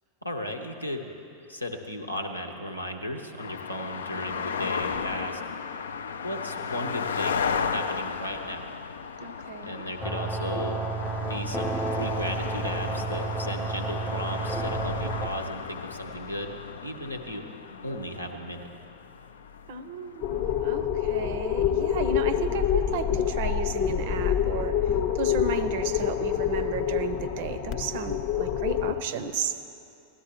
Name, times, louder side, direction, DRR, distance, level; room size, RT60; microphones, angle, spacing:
voice 1, 0.2-1.1 1.5-5.4 6.2-8.8 9.6-10.8 11.3-17.5 17.8-18.7, left 1 dB, 85° left, 4 dB, 0.8 m, -35 dB
sound 1, 3.4-20.8, left 6 dB, 65° left, 0.3 m, -35 dB
voice 2, 9.2-9.8 19.7-24.8 25.1-29.6, right 6 dB, 50° right, 12 dB, 0.5 m, -33 dB
sound 2, 10.0-15.3, right 3 dB, 5° left, 0.5 m, -31 dB
sound 3, 20.2-28.9, left 9 dB, 45° left, 0.7 m, -27 dB
17.0 x 12.0 x 2.9 m, 2.7 s
figure-of-eight pair, 90°, 0 cm